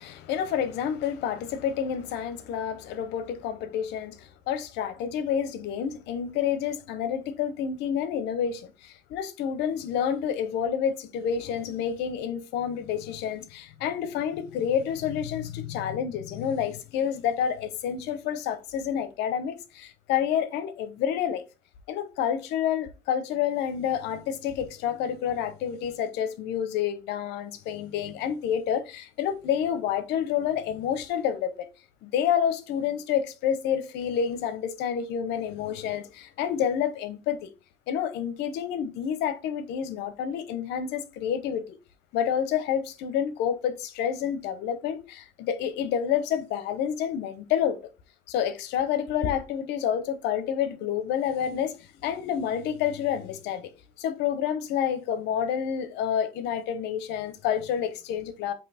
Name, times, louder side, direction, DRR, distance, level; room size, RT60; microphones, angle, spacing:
voice 1, 0.0-21.4 21.9-31.7 32.0-37.5 37.9-41.7 42.1-47.8 48.3-53.7 54.0-58.5, left 8 dB, 90° left, 0.9 m, -29 dB
7.6 x 3.0 x 4.3 m
cardioid pair, 110°, 17 cm